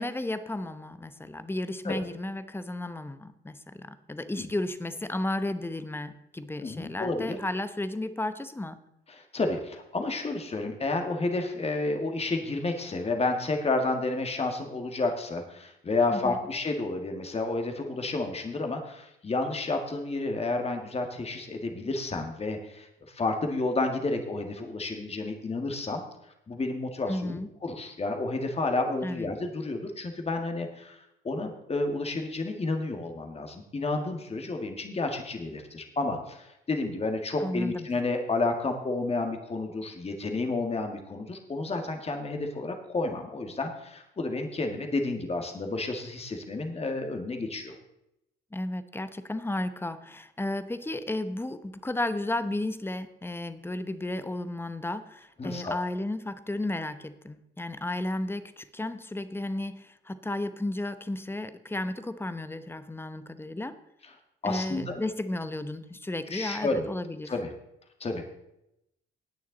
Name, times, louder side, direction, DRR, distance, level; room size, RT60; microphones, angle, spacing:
voice 1, 0.0-8.8 16.1-16.4 27.1-27.5 29.0-29.3 37.4-37.9 48.5-63.8 64.4-67.3, left 1 dB, 10° left, 12 dB, 0.8 m, -33 dB
voice 2, 6.6-7.4 9.1-26.0 26.5-31.0 31.2-47.7 55.4-55.8 64.0-64.1 64.4-65.1 66.3-66.9 67.3-67.5 68.0-68.2, left 2 dB, 30° left, 4 dB, 1.9 m, -31 dB
19.0 x 6.6 x 3.9 m, 0.84 s
cardioid pair, 90°, 20 cm